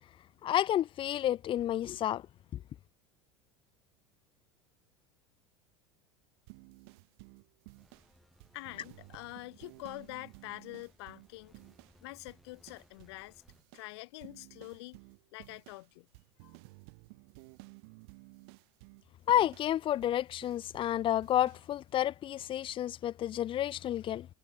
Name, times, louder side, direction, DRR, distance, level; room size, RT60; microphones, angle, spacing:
voice 1, 0.4-2.2 19.3-24.3, left 12 dB, 35° left, 0.8 m, -30 dB
sound 1, 6.5-12.0 12.3-13.2 13.5-20.9 21.2-21.7, right 33 dB, 60° right, 2.1 m, -55 dB
sound 2, 7.8-13.6, equal, ahead, 6.9 m, -65 dB
voice 2, 8.5-11.6 12.0-13.4 13.7-15.0 15.3-16.1 16.4-16.6, left 21 dB, 60° left, 2.3 m, -46 dB
figure-of-eight pair, 75°, 15 cm